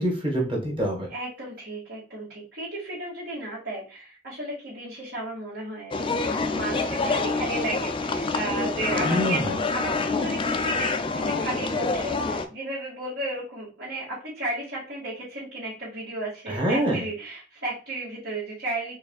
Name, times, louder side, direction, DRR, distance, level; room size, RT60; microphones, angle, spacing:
voice 1, 0.0-1.1 9.0-9.5 16.5-17.0, equal, 25° right, -1 dB, 1.5 m, -25 dB
voice 2, 1.1-19.0, right 2 dB, 60° right, -9 dB, 1.9 m, -34 dB
sound 1, 5.9-12.5, left 3 dB, 25° left, 0.4 m, -27 dB
4.6 x 3.3 x 2.3 m, 0.35 s
head